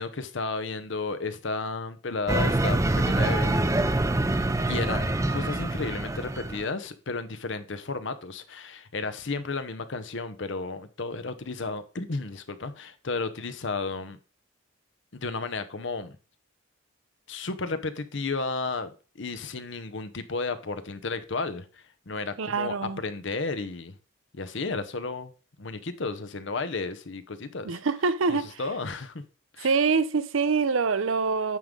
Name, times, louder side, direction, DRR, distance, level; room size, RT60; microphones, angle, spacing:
voice 1, 0.0-3.8 4.7-14.2 15.1-16.2 17.3-21.7 22.1-23.9 24.3-25.3 25.6-27.8 28.3-29.2 29.6-29.7, left 3 dB, 65° left, 0.8 m, -33 dB
sound 1, 2.3-6.7, right 2 dB, 15° right, 0.5 m, -25 dB
voice 2, 22.4-23.0 27.6-28.6 29.6-31.6, right 4 dB, 75° right, 0.6 m, -25 dB
9.4 x 3.7 x 5.2 m
head